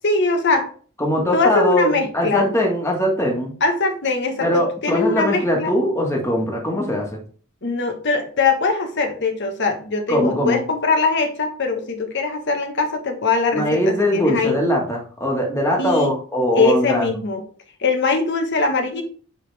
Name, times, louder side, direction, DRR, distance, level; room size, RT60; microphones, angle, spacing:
voice 1, 0.0-0.7 1.3-2.4 3.6-5.7 7.6-14.5 15.8-16.1 16.5-17.4 17.8-19.0, left 3 dB, 55° left, 5 dB, 1.3 m, -21 dB
voice 2, 1.0-3.5 4.4-7.2 10.1-10.6 13.5-17.1, equal, 15° left, -1 dB, 1.8 m, -21 dB
8.1 x 3.9 x 3.4 m, 0.43 s
head